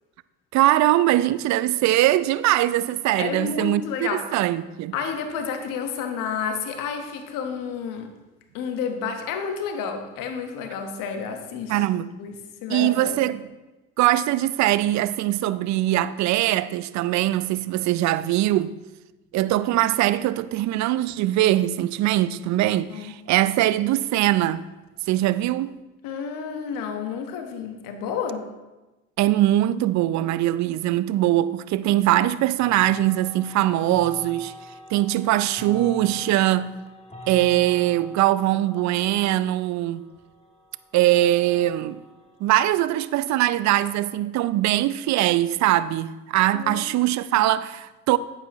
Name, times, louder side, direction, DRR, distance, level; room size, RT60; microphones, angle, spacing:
voice 1, 0.5-4.9 11.7-12.1 12.7-13.4 14.0-18.7 19.3-24.6 25.1-25.7 29.2-34.5 34.9-36.7 37.3-40.0 40.9-42.0 42.4-48.2, right 14 dB, 55° right, 0.5 m, -22 dB
voice 2, 3.2-4.2 4.9-8.1 8.5-11.7 12.2-12.3 12.6-13.2 22.9-23.1 26.0-28.4 35.7-36.2 46.5-46.8 47.3-47.5, left 6 dB, 65° left, 1.2 m, -30 dB
sound 1, 32.6-43.3, left 1 dB, 15° left, 1.5 m, -45 dB
9.5 x 7.9 x 3.1 m
hypercardioid pair, 60°, 35 cm